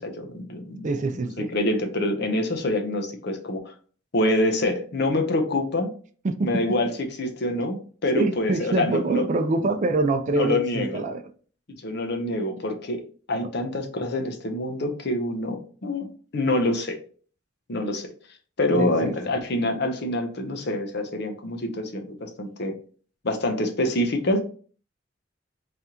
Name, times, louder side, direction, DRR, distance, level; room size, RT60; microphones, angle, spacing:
voice 1, 0.0-3.7 4.1-5.9 6.4-9.3 10.3-11.0 11.7-13.0 13.3-16.1 16.3-17.0 17.7-18.1 18.6-22.8 23.2-24.4, left 1 dB, 60° left, 0.7 m, -26 dB
voice 2, 0.8-1.5 6.2-6.5 8.1-11.2 18.7-19.1, right 3 dB, 40° right, 0.4 m, -25 dB
3.3 x 2.9 x 3.6 m
head